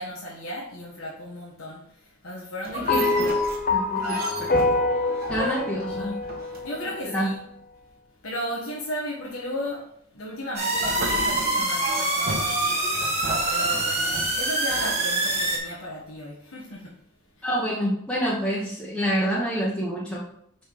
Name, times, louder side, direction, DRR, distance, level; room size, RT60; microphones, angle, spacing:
voice 1, 0.0-3.2 5.8-6.3 6.6-7.4 8.2-9.9 10.1-12.8 13.4-16.9, equal, 80° left, -5 dB, 1.5 m, -35 dB
sound 1, 2.7-7.0 10.7-15.8, right 1 dB, 45° right, 1.4 m, -34 dB
voice 2, 2.8-3.2 3.7-4.6 5.3-6.1 7.1-7.3 17.4-20.2, equal, 5° left, -6 dB, 1.0 m, -27 dB
sound 2, 2.9-7.3, left 3 dB, 40° left, 0.6 m, -26 dB
sound 3, 10.6-15.6, right 2 dB, 30° right, 1.8 m, -25 dB
5.4 x 4.7 x 4.7 m, 0.71 s
head